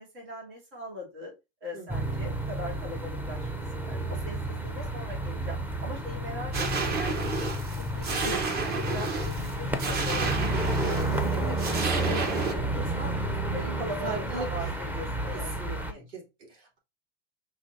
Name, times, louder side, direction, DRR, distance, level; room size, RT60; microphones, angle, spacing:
voice 1, 0.0-1.3 1.6-3.5 3.7-7.3 7.8-8.4 8.7-13.2 13.5-16.0, left 1 dB, 75° right, 2.9 m, -41 dB
voice 2, 1.7-2.1 8.2-8.6 11.3-11.6 14.0-14.8 15.3-16.8, right 3 dB, 50° right, 2.9 m, -39 dB
sound 1, 1.9-15.9, right 1 dB, 5° right, 0.5 m, -31 dB
sound 2, 6.5-12.5, right 4 dB, 30° right, 0.9 m, -31 dB
5.8 x 3.2 x 2.6 m
supercardioid pair, 120°, 31 cm